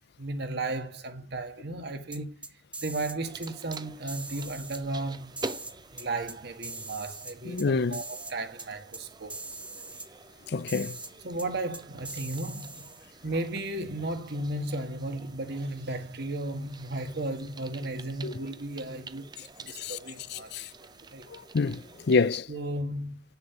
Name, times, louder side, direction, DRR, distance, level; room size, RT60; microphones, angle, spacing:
voice 1, 0.2-2.4 2.8-5.4 5.9-9.3 11.2-12.9 13.2-20.6 21.1-21.2 22.5-23.2, right 2 dB, 65° right, 1.7 m, -35 dB
sound 1, 2.1-3.2 3.4-3.8 4.1-4.8 5.4-6.4 6.6-7.7 7.9-8.3 8.6-8.7 8.9-9.0 9.3-10.1 10.7-11.1 11.4-11.5 11.7-13.1, right 3 dB, 5° right, 1.0 m, -41 dB
sound 2, 3.2-22.4, right 3 dB, 25° right, 0.6 m, -47 dB
voice 2, 7.5-8.0 10.5-11.0 18.2-18.3 19.8-20.0 20.3-20.7 21.3-22.5, left 4 dB, 65° left, 0.5 m, -27 dB
8.9 x 6.7 x 6.9 m
head